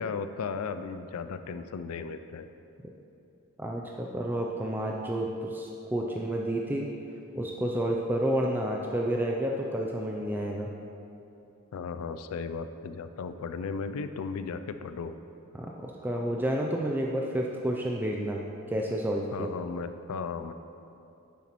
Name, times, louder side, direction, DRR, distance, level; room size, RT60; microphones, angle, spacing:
voice 1, 0.0-2.5 11.7-15.1 19.3-20.5, left 5 dB, 80° left, 10 dB, 0.4 m, -35 dB
voice 2, 3.6-6.9 7.3-10.7 15.5-18.4 18.7-19.5, right 1 dB, 10° right, -1 dB, 0.3 m, -30 dB
9.8 x 7.0 x 3.0 m, 2.8 s
head